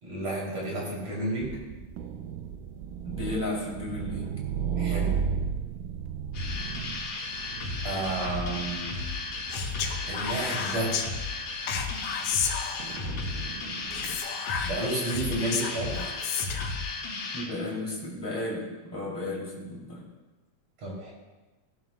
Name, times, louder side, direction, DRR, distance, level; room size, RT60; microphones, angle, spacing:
voice 1, 0.0-1.5 4.8-5.1 7.8-9.0 10.1-11.0 14.6-16.0 20.8-21.1, right 2 dB, 50° right, -5 dB, 4.5 m, -31 dB
sound 1, 1.4-14.2, right 7 dB, 85° right, 2.3 m, -36 dB
voice 2, 3.0-4.3 17.3-20.0, left 2 dB, 5° left, -4 dB, 2.9 m, -34 dB
sound 2, 6.3-17.4, left 3 dB, 60° left, 3.0 m, -34 dB
Speech, 9.5-11.1 11.7-13.1 13.9-16.8, left 7 dB, 80° left, 2.4 m, -32 dB
17.0 x 11.5 x 2.4 m, 1.2 s
omnidirectional pair, 3.7 m